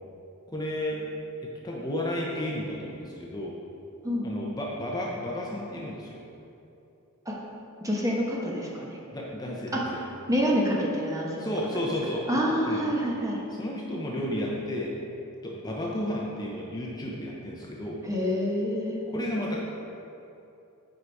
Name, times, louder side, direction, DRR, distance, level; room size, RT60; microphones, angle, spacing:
voice 1, 0.5-1.1 1.6-3.5 4.2-6.2 9.1-9.9 11.4-12.3 12.6-12.8 13.6-14.9 15.4-18.0 19.1-19.6, left 1 dB, 20° left, -3 dB, 0.7 m, -32 dB
voice 2, 7.8-9.0 9.7-9.8 10.3-11.5 12.3-13.4 18.0-19.0, equal, 15° right, -3 dB, 1.0 m, -27 dB
7.8 x 4.9 x 4.7 m, 2.8 s
head